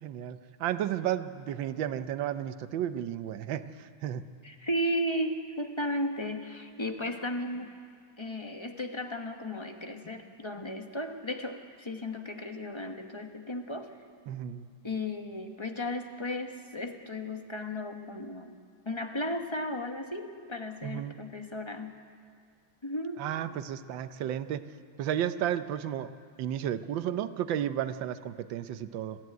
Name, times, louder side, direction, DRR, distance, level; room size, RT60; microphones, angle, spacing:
voice 1, 0.0-4.2 14.3-14.7 20.8-21.2 23.2-24.6 25.0-26.1 26.4-29.2, right 10 dB, 85° right, 12 dB, 1.5 m, -33 dB
voice 2, 4.4-7.7 8.2-13.9 14.8-18.6 18.8-21.9 22.8-23.2, left 1 dB, 20° left, 5 dB, 0.9 m, -35 dB
20.5 x 14.0 x 9.4 m, 2.2 s
omnidirectional pair, 2.0 m